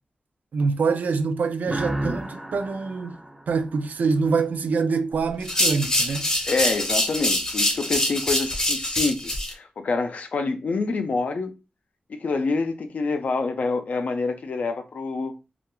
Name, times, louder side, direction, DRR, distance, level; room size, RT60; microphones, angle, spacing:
voice 1, 0.5-3.2 3.5-6.4, right 4 dB, 85° right, 0.3 m, -25 dB
sound 1, 1.7-4.3, right 1 dB, 5° right, 0.4 m, -32 dB
sound 2, 5.4-9.5, left 1 dB, 25° left, 0.7 m, -24 dB
voice 2, 6.5-11.5 12.1-15.3, left 3 dB, 65° left, 0.4 m, -27 dB
2.3 x 2.2 x 2.9 m
wide cardioid pair, 125°, 3 cm